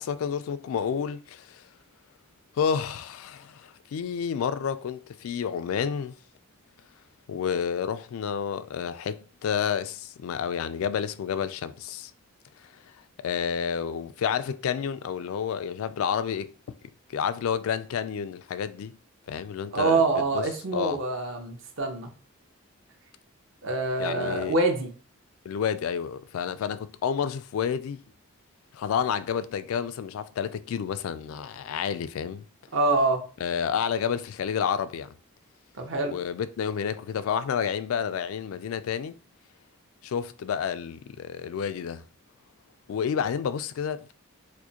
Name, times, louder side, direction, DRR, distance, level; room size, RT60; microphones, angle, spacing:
voice 1, 0.0-1.6 2.5-6.1 7.3-12.1 13.2-16.5 17.1-18.9 19.3-21.0 24.0-24.6 25.5-28.0 28.7-32.5 33.4-35.2 36.1-39.2 40.0-42.0 42.9-44.1, left 7 dB, 80° left, 0.3 m, -30 dB
voice 2, 19.7-22.1 23.6-24.9 32.7-33.2 35.8-36.1, right 3 dB, 60° right, 0.8 m, -25 dB
4.7 x 2.1 x 2.8 m
head